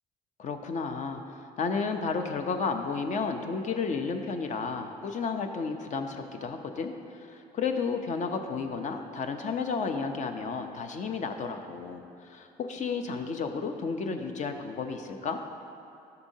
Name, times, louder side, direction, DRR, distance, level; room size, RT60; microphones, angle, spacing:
voice 1, 0.4-15.4, left 5 dB, 45° left, 5 dB, 0.7 m, -32 dB
12.5 x 6.8 x 2.8 m, 2.6 s
cardioid pair, 110°, 17 cm